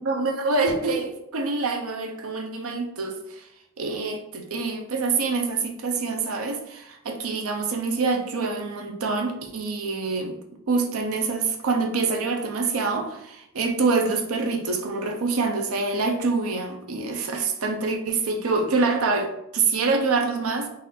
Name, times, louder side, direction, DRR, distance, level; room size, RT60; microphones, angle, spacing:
voice 1, 0.0-3.4 3.8-10.4 10.7-20.7, right 4 dB, 80° right, 4 dB, 0.6 m, -26 dB
4.0 x 2.5 x 4.1 m, 0.81 s
head